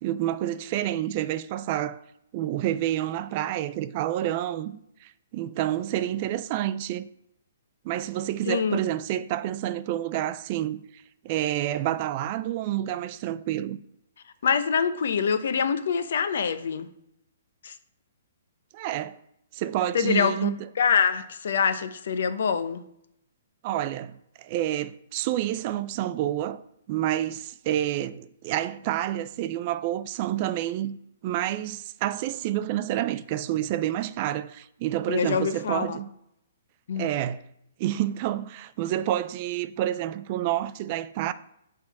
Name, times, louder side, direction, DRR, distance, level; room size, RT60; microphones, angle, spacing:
voice 1, 0.0-2.0 2.3-7.1 7.8-13.8 18.7-19.2 19.5-20.7 23.6-26.6 26.9-31.0 31.2-36.1 37.0-37.4 37.8-41.3, right 12 dB, 40° right, 0.4 m, -29 dB
voice 2, 8.5-8.8 14.4-16.9 17.6-17.7 19.9-20.5 20.8-22.8 35.1-36.0 36.9-37.1, left 6 dB, 70° left, 0.7 m, -25 dB
6.4 x 3.7 x 5.9 m
hypercardioid pair, 145°, 0 cm